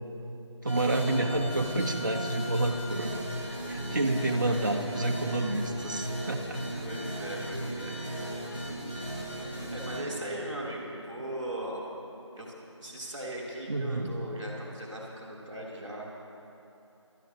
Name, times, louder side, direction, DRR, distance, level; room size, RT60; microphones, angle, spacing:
voice 1, 0.6-3.2 3.7-6.6 13.7-14.1, right 2 dB, 40° right, 2 dB, 1.0 m, -29 dB
sound 1, 0.7-10.0, right 1 dB, 25° left, 3.5 m, -37 dB
voice 2, 6.8-8.6 9.7-11.8 12.4-16.1, right 1 dB, 5° right, -15 dB, 1.8 m, -39 dB
24.5 x 12.5 x 3.0 m, 2.9 s
figure-of-eight pair, 170°, 16 cm